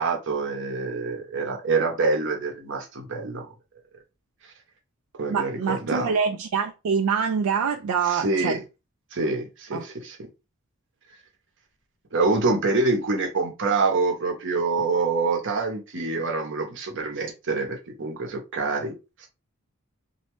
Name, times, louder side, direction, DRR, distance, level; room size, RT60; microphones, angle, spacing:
voice 1, 0.0-3.5 5.2-6.1 8.1-8.6 9.1-10.3 12.1-18.9 19.2-19.3, right 3 dB, 60° right, 0.8 m, -26 dB
voice 2, 5.3-8.6 9.7-9.8, right 6 dB, 80° right, 0.4 m, -25 dB
2.6 x 2.1 x 2.9 m
head